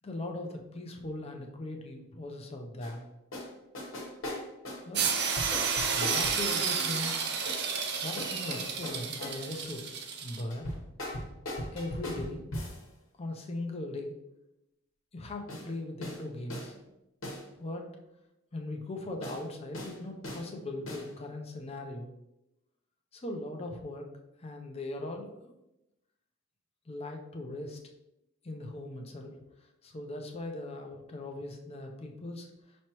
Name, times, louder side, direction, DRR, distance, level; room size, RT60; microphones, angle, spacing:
voice 1, 0.0-3.1 4.8-5.0 5.9-7.3 8.0-9.8 10.2-10.7 11.7-12.4 13.2-14.1 15.1-16.7 17.6-17.9 18.5-22.1 23.1-24.1 24.4-25.5 26.9-27.8 28.4-29.4 29.6-32.8, left 2 dB, 30° left, 3 dB, 0.6 m, -39 dB
sound 1, 2.8-2.9 3.3-3.5 3.7-6.4 7.1-7.6 8.2-9.6 10.5-12.8 15.5-15.7 16.0-16.2 16.5-16.7 17.2-17.4 19.2-19.4 19.7-20.0 20.2-20.5 20.9-21.1, left 1 dB, 70° left, 1.1 m, -39 dB
sound 2, 4.9-10.4, right 6 dB, 55° right, 0.5 m, -31 dB
5.6 x 3.2 x 2.9 m, 0.91 s
head